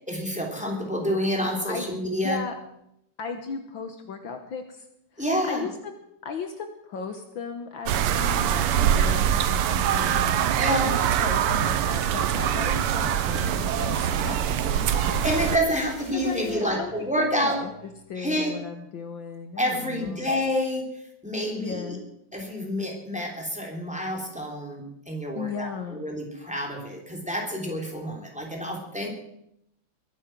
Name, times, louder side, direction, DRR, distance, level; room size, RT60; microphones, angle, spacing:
voice 1, 0.1-2.4 5.2-5.6 8.8-8.9 10.6-10.9 15.2-17.6 18.2-18.5 19.6-20.8 21.2-22.0 22.3-29.1, equal, 5° right, 0 dB, 3.3 m, -28 dB
voice 2, 2.2-2.6 3.2-4.9 5.1-5.7 6.2-15.2 15.7-17.7 18.1-20.3 21.6-22.0 25.4-26.0, left 5 dB, 65° left, 6 dB, 1.8 m, -36 dB
sound 1, 7.9-15.6, right 9 dB, 85° right, 1.8 m, -24 dB
sound 2, 12.4-18.1, right 2 dB, 20° right, 1.7 m, -45 dB
22.0 x 9.1 x 6.1 m, 0.78 s
omnidirectional pair, 2.4 m